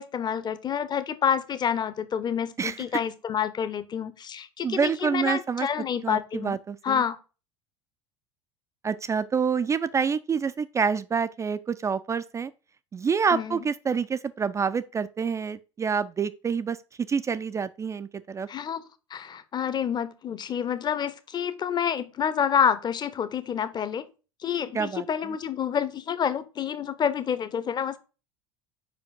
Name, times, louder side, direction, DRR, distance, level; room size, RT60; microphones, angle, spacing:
voice 1, 0.0-6.6 6.8-7.2 13.3-13.6 18.5-18.8 19.1-24.1 24.4-28.0, left 8 dB, 30° left, 0.8 m, -28 dB
voice 2, 4.6-5.7 6.0-7.0 8.8-12.5 12.9-16.8 17.1-18.5 24.7-25.4, right 6 dB, 20° right, 0.4 m, -27 dB
5.1 x 4.9 x 5.0 m
figure-of-eight pair, 70°, 15 cm